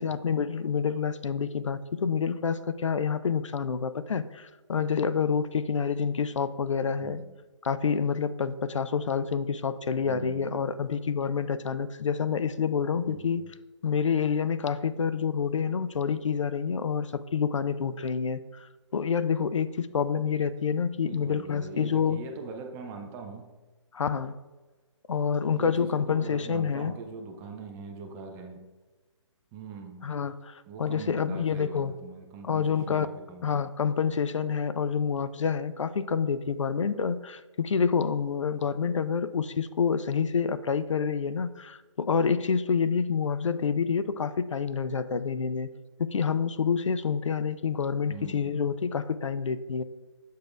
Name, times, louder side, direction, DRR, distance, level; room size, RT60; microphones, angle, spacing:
voice 1, 0.0-7.2 7.6-13.4 13.8-22.2 23.9-24.4 25.1-26.9 30.0-31.9 32.5-33.1 33.4-45.7 46.0-49.8, left 6 dB, 75° left, 13 dB, 0.5 m, -28 dB
voice 2, 7.0-7.3 10.0-10.5 13.0-13.5 21.0-23.5 25.4-28.7 29.5-30.1 30.7-33.5 48.1-48.6, right 4 dB, 15° right, 4 dB, 0.5 m, -42 dB
8.1 x 6.5 x 2.4 m, 1.2 s
figure-of-eight pair, 145°, 16 cm